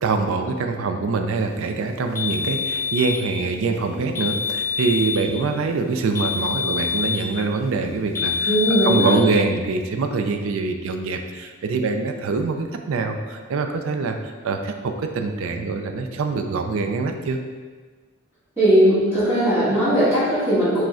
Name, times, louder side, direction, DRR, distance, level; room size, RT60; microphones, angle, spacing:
voice 1, 0.0-17.4, right 4 dB, 70° right, 5 dB, 0.4 m, -24 dB
sound 1, 2.1-3.3 4.1-5.3 6.1-7.3 8.1-9.3, left 6 dB, 10° left, 0.4 m, -25 dB
voice 2, 8.4-9.1 18.6-20.8, right 1 dB, 10° right, -14 dB, 1.3 m, -18 dB
4.9 x 2.1 x 3.6 m, 1.4 s
head